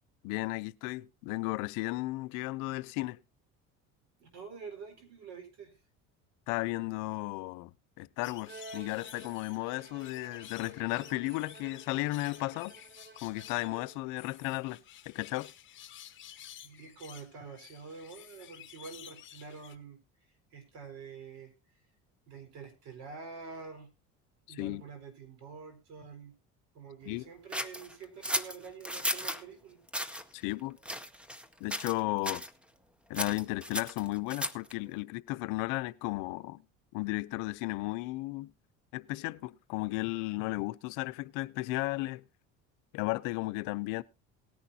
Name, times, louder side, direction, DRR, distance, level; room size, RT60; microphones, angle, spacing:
voice 1, 0.2-3.2 6.5-7.7 8.0-12.7 13.2-14.8 15.1-15.5 24.5-24.8 27.1-27.2 30.3-30.8 31.6-32.4 33.1-36.6 36.9-38.5 38.9-42.2 42.9-44.0, left 21 dB, 85° left, 0.6 m, -34 dB
voice 2, 4.2-5.7 16.6-20.0 20.5-21.5 22.3-23.9 24.5-26.3 26.7-29.8, right 5 dB, 60° right, 4.2 m, -47 dB
sound 1, 8.2-19.8, left 12 dB, 40° left, 1.2 m, -52 dB
Bowed string instrument, 8.4-14.2, right 3 dB, 35° right, 0.9 m, -52 dB
sound 2, 27.5-29.4 29.9-30.2 30.8-31.5 31.7-32.0 32.2-32.5 33.1-34.7, equal, 5° right, 0.7 m, -35 dB
18.5 x 10.0 x 2.7 m
cardioid pair, 140°, 31 cm